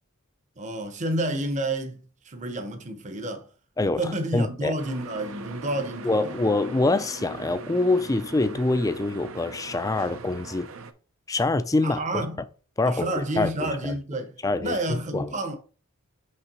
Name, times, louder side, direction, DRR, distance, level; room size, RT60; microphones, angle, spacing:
voice 1, 0.6-3.5 4.0-6.3 11.8-12.4 12.8-15.6, right 1 dB, 35° right, 0.8 m, -30 dB
voice 2, 3.8-4.7 6.0-10.7 11.3-12.2 12.8-13.9 14.4-15.3, left 2 dB, 15° left, 0.4 m, -25 dB
sound 1, 4.8-10.9, right 4 dB, 70° right, 0.6 m, -40 dB
5.6 x 3.3 x 5.3 m
head